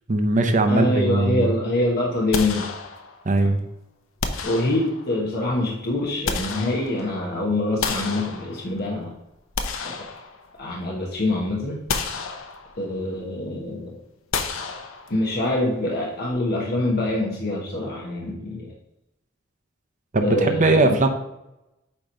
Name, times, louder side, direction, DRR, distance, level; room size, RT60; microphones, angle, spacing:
voice 1, 0.1-1.5 3.2-3.6 20.1-21.1, right 2 dB, 40° right, 6 dB, 0.7 m, -19 dB
voice 2, 0.7-2.7 3.4-3.5 4.4-9.1 9.8-10.1 10.6-11.8 12.8-14.0 15.1-18.7 20.2-21.1, left 1 dB, 50° left, -2 dB, 1.1 m, -25 dB
sound 1, 2.3-3.4 4.2-5.3 5.9-7.3 7.8-8.9 9.3-10.8 11.2-11.3 11.9-13.0 14.3-15.4, left 5 dB, 85° left, 0.8 m, -31 dB
8.7 x 3.0 x 5.3 m, 0.90 s
head